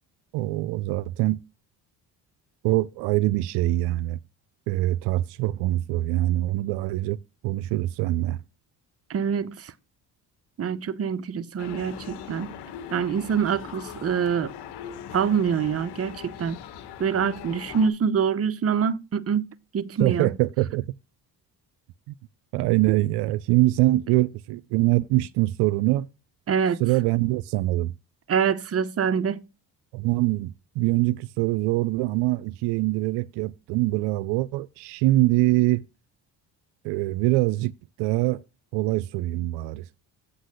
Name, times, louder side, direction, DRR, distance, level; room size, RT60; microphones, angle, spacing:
voice 1, 0.3-1.4 2.6-4.2 4.7-7.2 7.4-8.4 20.0-20.9 22.1-22.2 22.5-26.1 26.8-27.9 29.9-35.8 36.8-37.7 38.0-38.4 38.7-39.8, right 17 dB, 85° right, 0.5 m, -23 dB
voice 2, 9.1-9.7 10.6-12.6 12.9-14.5 15.1-16.6 17.0-19.5 19.7-20.3 26.5-26.8 28.3-29.4, right 7 dB, 35° right, 0.8 m, -25 dB
sound 1, 11.6-17.9, left 8 dB, 75° left, 1.6 m, -40 dB
8.3 x 4.0 x 6.4 m
supercardioid pair, 75°, 40 cm